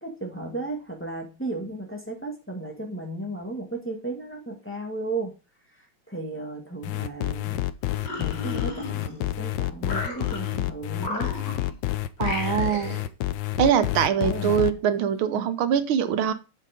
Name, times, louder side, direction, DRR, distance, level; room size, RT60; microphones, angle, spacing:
voice 1, 0.0-5.3 6.1-7.7 8.2-11.3 14.2-14.8 15.3-15.5, right 2 dB, 5° left, 2 dB, 1.7 m, -34 dB
sound 1, 6.8-14.7, left 15 dB, 75° left, 1.3 m, -29 dB
sound 2, 7.8-9.4 9.8-10.6 11.0-11.8 12.2-13.1, left 2 dB, 60° left, 3.0 m, -35 dB
voice 2, 12.2-13.0 13.6-16.3, right 8 dB, 80° right, 11 dB, 1.6 m, -23 dB
7.4 x 5.8 x 5.1 m, 0.29 s
omnidirectional pair, 2.2 m